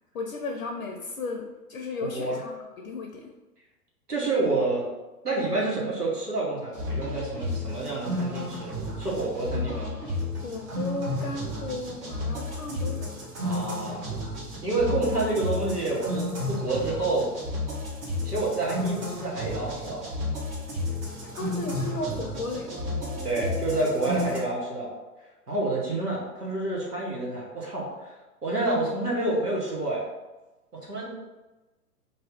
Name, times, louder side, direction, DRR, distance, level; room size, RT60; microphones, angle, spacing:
voice 1, 0.1-3.3 9.5-13.2 21.3-22.8, left 3 dB, 65° left, 2 dB, 0.6 m, -35 dB
voice 2, 2.0-2.4 4.1-4.9 5.2-9.9 13.4-14.1 14.6-17.3 18.2-20.0 23.2-24.9 25.5-28.1 28.4-30.1 30.7-31.1, right 2 dB, 90° right, -4 dB, 1.1 m, -28 dB
sound 1, 6.7-24.4, left 1 dB, 20° right, 0.6 m, -32 dB
2.7 x 2.3 x 3.4 m, 1.1 s
figure-of-eight pair, 105°, 46 cm